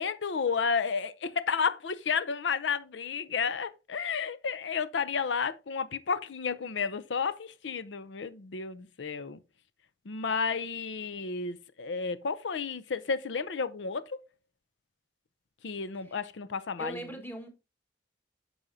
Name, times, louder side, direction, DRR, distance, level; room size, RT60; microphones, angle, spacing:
voice 1, 0.0-9.4 10.1-14.2 15.6-17.0, left 5 dB, 90° left, 0.6 m, -32 dB
voice 2, 15.9-16.3 16.8-17.5, right 1 dB, 10° left, 1.6 m, -41 dB
9.7 x 6.3 x 2.7 m
head